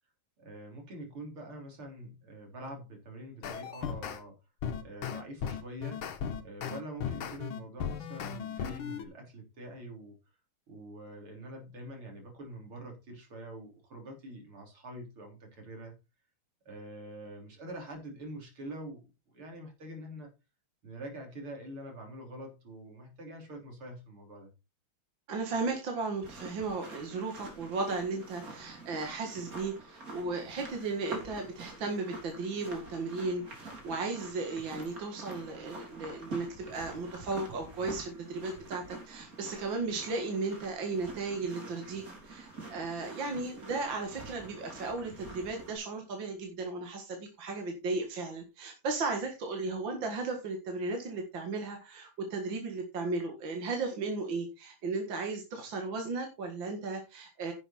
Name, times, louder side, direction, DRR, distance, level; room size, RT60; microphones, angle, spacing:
voice 1, 0.4-4.4 4.8-6.0 6.4-10.2 10.7-15.9 16.7-20.3 20.8-24.5, right 1 dB, 75° right, 3 dB, 4.3 m, -45 dB
sound 1, 3.4-4.2 4.6-9.0, left 8 dB, 70° left, 2.0 m, -36 dB
voice 2, 25.3-57.5, right 3 dB, 60° right, 3 dB, 2.5 m, -35 dB
sound 2, 26.2-45.8, right 2 dB, 40° right, 3.8 m, -47 dB
10.5 x 7.6 x 4.3 m, 0.28 s
omnidirectional pair, 2.4 m